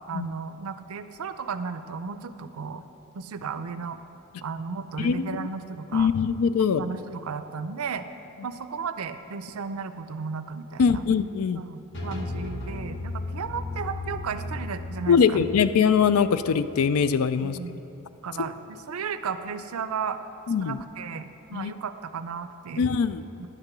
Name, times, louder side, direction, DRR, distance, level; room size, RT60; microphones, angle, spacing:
voice 1, 0.1-2.8 3.1-4.0 4.4-6.1 6.8-8.0 8.4-11.0 11.6-15.5 17.4-17.8 18.2-20.2 20.6-22.8 23.4-23.5, right 5 dB, 85° right, 11 dB, 0.5 m, -34 dB
voice 2, 5.0-5.5 5.9-6.8 10.8-11.6 15.1-17.6 20.5-20.8 21.5-21.7 22.8-23.2, left 6 dB, 85° left, 13 dB, 0.4 m, -22 dB
sound 1, 11.9-17.6, left 2 dB, 55° left, 1.2 m, -36 dB
10.5 x 6.6 x 6.1 m, 2.9 s
head